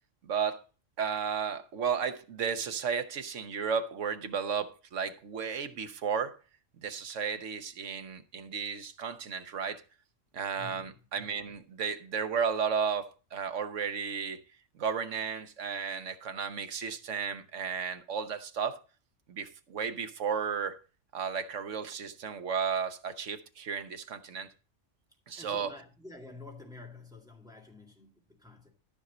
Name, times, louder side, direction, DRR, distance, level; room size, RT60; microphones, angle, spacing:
voice 1, 0.2-0.6 1.0-6.4 6.8-9.8 10.3-14.4 14.7-18.8 19.3-20.8 21.1-24.5 25.3-25.7, right 6 dB, 70° right, 1.3 m, -33 dB
voice 2, 10.5-11.1 25.4-28.7, left 3 dB, 5° right, 2.1 m, -49 dB
13.5 x 6.3 x 4.0 m
omnidirectional pair, 1.3 m